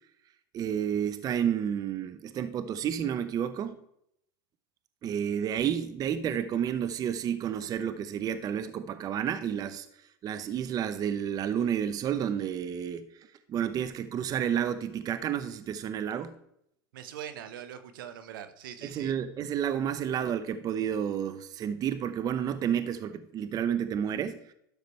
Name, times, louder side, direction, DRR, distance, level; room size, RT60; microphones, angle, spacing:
voice 1, 0.5-3.8 5.0-9.9 10.2-13.0 13.5-16.3 18.8-24.4, right 9 dB, 35° right, 0.7 m, -30 dB
voice 2, 16.9-19.1, right 10 dB, 75° right, 1.1 m, -42 dB
11.5 x 6.7 x 3.2 m
hypercardioid pair, 105°, 11 cm